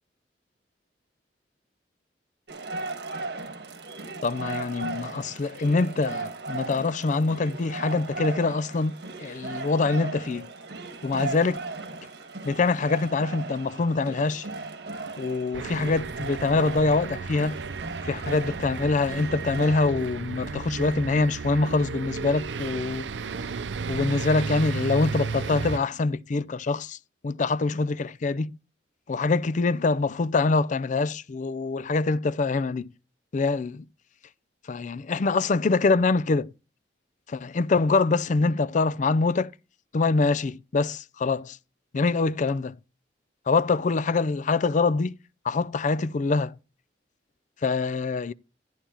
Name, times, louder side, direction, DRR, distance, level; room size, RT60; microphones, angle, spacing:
sound 1, 2.5-19.9, right 3 dB, 65° right, 1.4 m, -37 dB
voice 1, 4.2-8.9 9.2-10.5 11.0-11.6 11.9-12.1 12.4-14.5 15.2-17.6 18.0-23.1 23.9-27.0 27.2-28.6 29.1-32.9 33.3-33.9 34.7-36.5 37.3-39.5 39.9-41.6 41.9-42.8 43.5-45.2 45.4-46.6 47.6-48.3, left 3 dB, 45° left, 0.4 m, -24 dB
sound 2, 15.5-25.8, right 5 dB, 85° right, 0.6 m, -33 dB
11.5 x 10.0 x 2.9 m
head